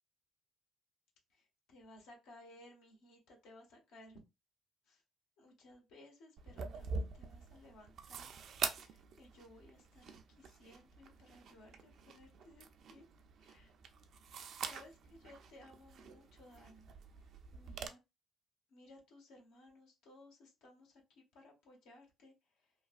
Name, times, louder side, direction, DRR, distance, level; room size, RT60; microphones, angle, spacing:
voice 1, 1.3-4.2 4.9-5.0 5.4-8.3 8.8-13.0 13.4-13.7 14.4-16.9 17.5-18.0 18.7-22.7, left 1 dB, 80° left, 0 dB, 1.2 m, -60 dB
sound 1, 6.4-17.9, right 5 dB, 65° right, 0.4 m, -46 dB
3.1 x 2.3 x 2.4 m, 0.25 s
supercardioid pair, 60°, 0 cm